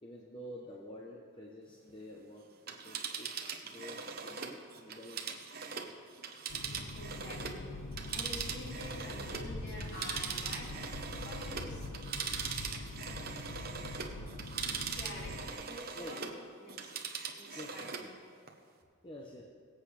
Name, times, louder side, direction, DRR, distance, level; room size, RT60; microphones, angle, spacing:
voice 1, 0.0-5.5 15.9-16.4 17.6-18.1 19.0-19.4, equal, 25° left, -1 dB, 0.9 m, -49 dB
Telephone, 2.5-7.6 7.9-16.4 16.7-18.1 18.5-18.6, right 6 dB, 45° right, 1.0 m, -41 dB
sound 1, 6.5-15.5, left 2 dB, 90° left, 0.8 m, -44 dB
voice 2, 6.9-11.9 14.7-16.3 16.6-17.0 17.3-18.1, left 1 dB, 55° left, -3 dB, 2.9 m, -48 dB
22.0 x 8.1 x 3.4 m, 2.2 s
head